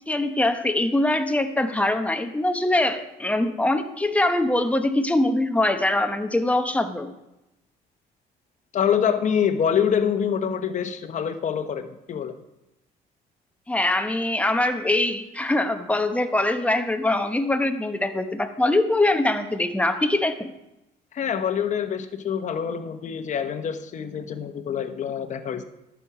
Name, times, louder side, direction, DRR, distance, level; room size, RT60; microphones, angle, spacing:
voice 1, 0.1-7.1 13.7-20.5, left 2 dB, 10° left, 7 dB, 1.0 m, -23 dB
voice 2, 8.7-12.3 21.1-25.6, left 8 dB, 45° left, 8 dB, 1.1 m, -25 dB
11.5 x 7.3 x 5.0 m, 0.91 s
cardioid pair, 110°, 17 cm